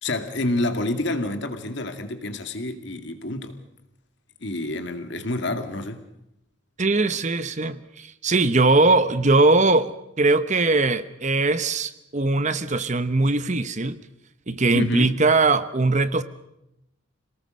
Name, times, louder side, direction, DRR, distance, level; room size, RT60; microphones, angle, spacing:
voice 1, 0.0-3.6 4.4-6.0 14.7-15.1, left 1 dB, 60° left, 2.3 m, -28 dB
voice 2, 6.8-14.0 14.5-16.2, right 3 dB, 35° right, 1.0 m, -21 dB
27.0 x 19.0 x 6.4 m
head